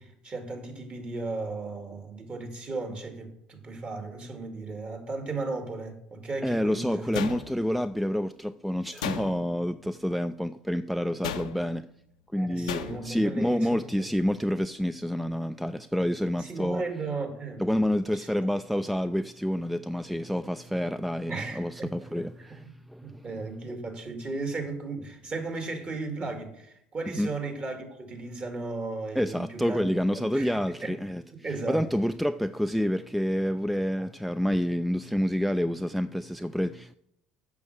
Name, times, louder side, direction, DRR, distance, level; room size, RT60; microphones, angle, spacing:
voice 1, 0.0-7.1 12.3-14.1 16.4-17.6 18.1-18.3 21.3-22.7 23.0-29.8 30.1-30.9 31.4-31.8 34.0-34.1, right 3 dB, 35° right, 2.2 m, -36 dB
voice 2, 6.4-11.9 12.3-16.8 17.6-23.3 27.2-27.3 29.1-31.2 31.7-36.9, equal, ahead, 0.3 m, -28 dB
sound 1, 7.1-7.9 9.0-9.7 11.2-11.8 12.7-13.2, left 8 dB, 85° left, 0.6 m, -35 dB
8.4 x 6.4 x 6.5 m
hypercardioid pair, 65°, 4 cm